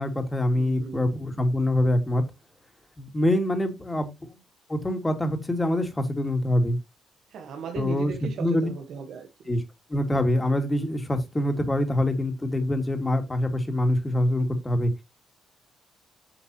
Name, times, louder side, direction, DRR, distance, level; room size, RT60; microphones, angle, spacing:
voice 1, 0.0-2.2 3.0-4.1 4.7-6.8 7.7-8.7 9.5-9.6 9.9-14.9, left 1 dB, 15° left, 2.5 m, -25 dB
voice 2, 0.6-1.0 7.3-9.3, right 7 dB, 70° right, 1.5 m, -37 dB
9.0 x 5.9 x 3.1 m
cardioid pair, 90°, 0 cm